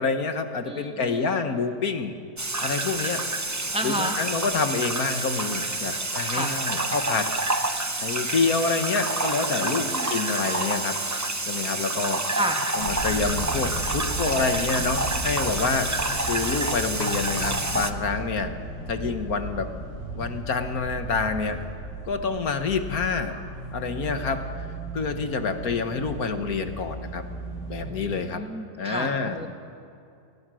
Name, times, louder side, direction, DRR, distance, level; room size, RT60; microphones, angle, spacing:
voice 1, 0.0-2.1 2.6-3.2 3.8-7.3 8.0-11.0 11.4-12.2 12.8-16.0 16.3-18.5 18.9-19.7 20.1-21.6 22.0-23.4 23.7-24.7 24.9-27.2 27.7-28.4 28.8-29.4, left 4 dB, 60° left, 7 dB, 1.7 m, -27 dB
voice 2, 0.6-1.4 3.7-4.2 6.3-6.5 9.6-10.1 12.3-12.6 27.8-29.5, right 1 dB, 5° right, 2 dB, 1.8 m, -32 dB
sound 1, 2.4-17.9, right 2 dB, 20° right, 0.4 m, -28 dB
sound 2, 8.9-9.1 9.7-11.2, right 2 dB, 85° right, 3.0 m, -39 dB
sound 3, 12.8-27.9, right 1 dB, 85° left, 6.8 m, -36 dB
27.0 x 19.5 x 6.3 m, 2.5 s
omnidirectional pair, 1.8 m